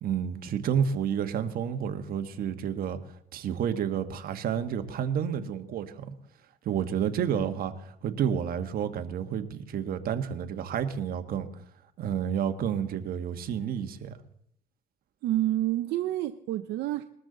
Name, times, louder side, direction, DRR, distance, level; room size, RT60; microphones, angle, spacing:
voice 1, 0.0-3.0 3.3-6.1 6.6-11.5 12.0-14.2, right 8 dB, 60° right, 1.3 m, -30 dB
voice 2, 15.2-17.0, right 14 dB, 80° right, 0.6 m, -28 dB
21.0 x 13.0 x 3.9 m
cardioid pair, 110°, 17 cm